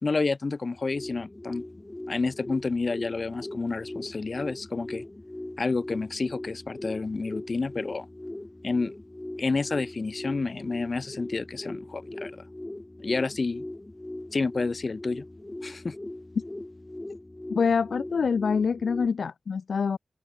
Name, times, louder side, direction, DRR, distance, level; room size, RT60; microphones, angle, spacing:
voice 1, 0.0-1.6 2.1-5.0 5.6-8.1 8.6-8.9 9.4-12.4 13.0-13.6 14.3-15.2 15.6-15.9, left 3 dB, 45° left, 0.5 m, -29 dB
sound 1, 0.7-19.1, left 1 dB, 20° left, 2.3 m, -40 dB
voice 2, 17.5-20.0, left 5 dB, 80° left, 1.2 m, -25 dB
open air
wide cardioid pair, 95°, 0 cm